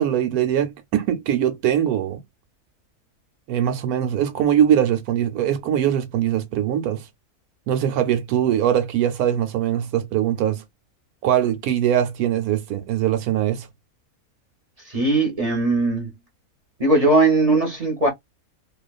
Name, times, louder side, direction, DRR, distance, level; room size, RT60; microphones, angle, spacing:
voice 1, 0.0-2.2 3.5-7.1 7.7-10.6 11.2-13.7, right 10 dB, 80° right, 1.1 m, -21 dB
voice 2, 14.8-16.1 16.8-18.1, right 2 dB, 30° right, 0.8 m, -19 dB
2.5 x 2.3 x 2.3 m
omnidirectional pair, 1.6 m